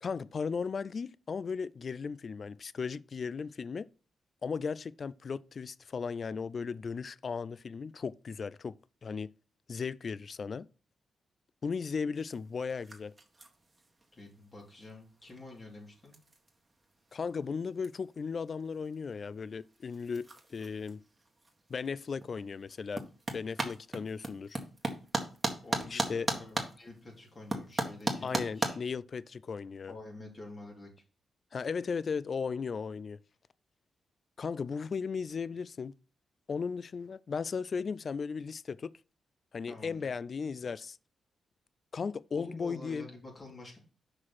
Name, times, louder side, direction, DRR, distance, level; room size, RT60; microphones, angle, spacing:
voice 1, 0.0-3.9 4.4-8.8 9.0-9.3 9.7-10.7 11.6-13.1 17.1-21.0 21.7-23.1 23.3-24.6 25.9-26.3 28.2-29.9 31.5-33.2 34.4-35.9 36.5-38.9 39.5-41.0 41.9-43.1, left 5 dB, 55° left, 0.4 m, -36 dB
sound 1, 12.2-28.7, right 2 dB, 25° right, 1.9 m, -40 dB
voice 2, 14.1-16.1 25.6-28.8 29.9-30.9 39.7-40.1 42.3-43.8, left 2 dB, 40° left, 3.9 m, -48 dB
6.3 x 5.0 x 5.6 m
cardioid pair, 60°, 0 cm